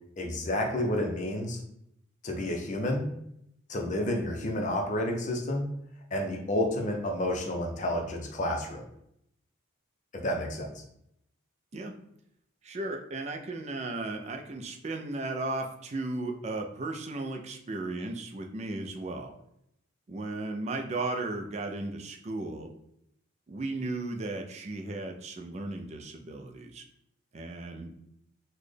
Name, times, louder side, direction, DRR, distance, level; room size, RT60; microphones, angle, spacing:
voice 1, 0.2-1.6 2.2-3.1 3.7-5.7 6.1-8.8 10.1-10.8, left 1 dB, 35° left, 1 dB, 0.5 m, -30 dB
voice 2, 12.6-19.3 20.1-22.7 23.5-26.8 27.3-27.9, right 2 dB, 30° right, 4 dB, 0.3 m, -35 dB
4.1 x 2.1 x 3.2 m, 0.76 s
head